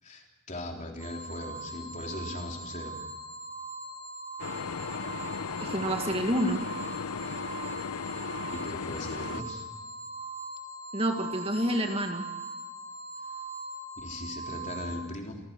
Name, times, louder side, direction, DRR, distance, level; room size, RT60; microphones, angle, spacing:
voice 1, 0.0-3.0 8.5-9.7 14.0-15.4, left 1 dB, 35° left, 1 dB, 3.8 m, -39 dB
sound 1, 1.0-15.0, right 2 dB, 85° right, 6.7 m, -41 dB
sound 2, 4.4-9.4, left 5 dB, 85° left, 0.7 m, -36 dB
voice 2, 5.6-6.6 10.9-12.2, right 1 dB, 25° right, 4 dB, 1.9 m, -28 dB
28.0 x 19.0 x 6.1 m, 1.2 s
head